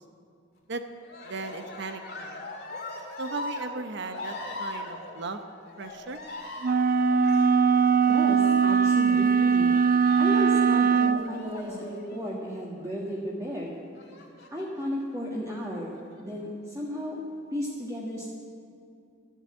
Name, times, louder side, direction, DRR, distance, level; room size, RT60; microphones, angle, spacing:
Cheering, 1.0-12.7 13.9-14.8 15.5-16.2, left 2 dB, 55° left, 2.1 m, -41 dB
voice 1, 1.2-2.5 3.2-5.4 5.8-6.2, right 3 dB, 60° right, 8 dB, 0.8 m, -37 dB
sound 1, 6.6-11.2, right 6 dB, 45° right, 0.4 m, -21 dB
voice 2, 8.1-9.7 10.2-13.7 14.5-17.2 17.5-18.3, equal, 15° right, -5 dB, 1.6 m, -34 dB
13.0 x 8.1 x 8.4 m, 2.5 s
head